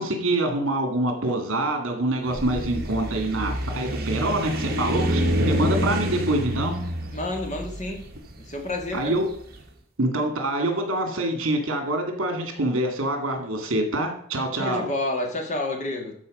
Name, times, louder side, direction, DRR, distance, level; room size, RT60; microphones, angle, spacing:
voice 1, 0.0-6.8 8.9-9.3 10.0-14.9, right 1 dB, 65° right, 4 dB, 2.2 m, -25 dB
sound 1, 2.2-9.4, equal, 45° right, 1.5 m, -27 dB
voice 2, 7.1-8.1 8.4-9.2 14.6-16.1, left 2 dB, 35° left, 2 dB, 1.8 m, -29 dB
13.0 x 4.4 x 5.4 m, 0.67 s
head